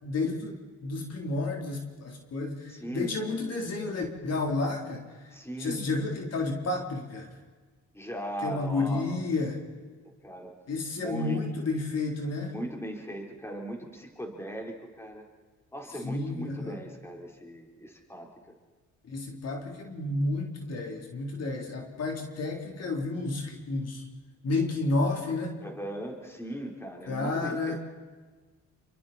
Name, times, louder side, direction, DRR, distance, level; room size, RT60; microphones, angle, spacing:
voice 1, 0.0-5.3 5.6-7.3 8.4-9.6 10.7-12.5 16.0-16.8 19.1-24.0 24.4-25.6 27.1-27.8, left 2 dB, 55° left, 1 dB, 3.9 m, -31 dB
voice 2, 2.7-3.1 5.3-5.8 7.9-9.1 10.2-10.6 10.9-11.4 12.4-15.2 15.7-18.3 25.6-27.8, right 1 dB, 10° left, 1 dB, 4.2 m, -38 dB
28.5 x 24.0 x 4.4 m, 1.4 s
cardioid pair, 90°, 30 cm